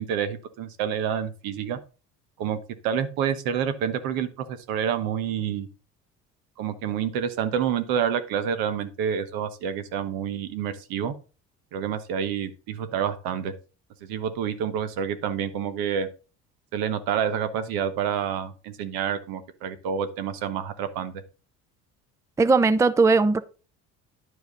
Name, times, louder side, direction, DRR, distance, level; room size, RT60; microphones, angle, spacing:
voice 1, 0.0-1.8 2.4-5.7 6.6-11.1 11.7-13.5 14.0-16.1 16.7-21.1, right 8 dB, 70° right, 1.1 m, -28 dB
voice 2, 22.4-23.4, right 3 dB, 10° right, 0.5 m, -18 dB
10.5 x 4.8 x 3.9 m
hypercardioid pair, 70°, 37 cm